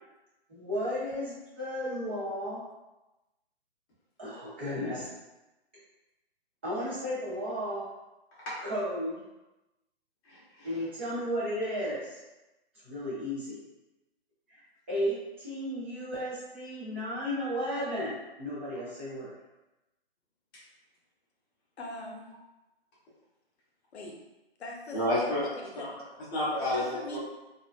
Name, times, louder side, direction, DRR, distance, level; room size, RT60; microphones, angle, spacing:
voice 1, 0.5-2.6 4.2-5.1 6.6-7.8 8.6-9.2 10.6-12.2 12.8-13.6 14.5-14.6 14.9-19.3, equal, 15° right, -10 dB, 0.4 m, -34 dB
voice 2, 10.3-10.7 24.9-25.4 25.8-25.9 26.3-27.2, left 1 dB, 20° left, -8 dB, 0.7 m, -30 dB
voice 3, 21.8-22.3 23.9-24.2 24.6-25.0 25.4-25.9 26.7-27.2, left 1 dB, 85° left, 1 dB, 0.6 m, -41 dB
2.4 x 2.2 x 2.4 m, 1.0 s
hypercardioid pair, 150°, 32 cm